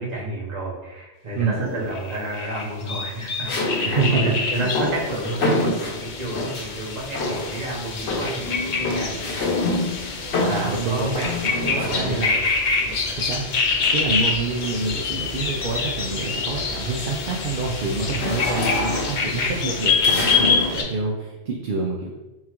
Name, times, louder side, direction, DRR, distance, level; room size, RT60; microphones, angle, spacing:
voice 1, 0.0-10.1 10.4-12.5 12.8-13.1, right 1 dB, 40° right, -5 dB, 1.2 m, -31 dB
sound 1, 1.6-2.1 3.4-6.8 7.1-7.7 8.0-12.4 13.5-14.9 15.4-15.7 16.0-20.8, left 2 dB, 70° left, 1.0 m, -28 dB
sound 2, 1.9-20.8, left 4 dB, 50° left, 0.6 m, -26 dB
voice 2, 3.8-4.2 4.6-4.7 10.4-11.1 11.4-12.3 13.2-13.4 13.9-22.1, right 4 dB, 60° right, -1 dB, 0.7 m, -27 dB
5.6 x 2.4 x 3.0 m, 1.0 s
omnidirectional pair, 1.1 m